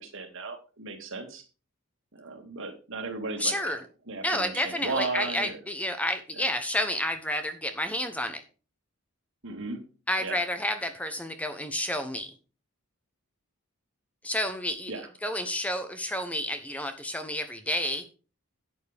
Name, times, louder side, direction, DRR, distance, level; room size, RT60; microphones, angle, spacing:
voice 1, 0.0-1.4 2.1-3.8 4.1-5.6 6.4-6.5 9.4-9.8 10.2-10.5 14.9-15.1, right 3 dB, 60° right, 5 dB, 2.3 m, -35 dB
voice 2, 3.4-3.8 4.2-8.4 10.1-12.3 14.2-14.9 15.2-18.1, left 1 dB, 5° left, 7 dB, 1.0 m, -30 dB
11.0 x 9.4 x 3.5 m, 0.35 s
head